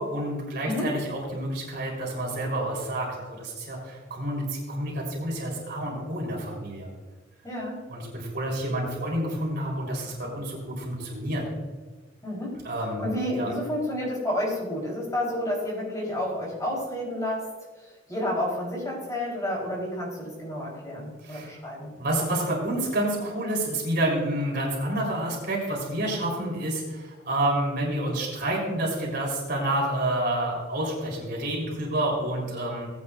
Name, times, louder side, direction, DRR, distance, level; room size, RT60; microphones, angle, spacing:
voice 1, 0.0-6.9 7.9-11.4 12.6-13.1 13.3-13.5 21.2-21.5 22.0-32.9, right 1 dB, 55° right, -2 dB, 3.7 m, -29 dB
voice 2, 7.4-7.8 12.2-12.5 13.0-17.5 18.1-21.9, left 1 dB, 20° left, -3 dB, 3.7 m, -30 dB
18.5 x 9.5 x 2.5 m, 1.3 s
head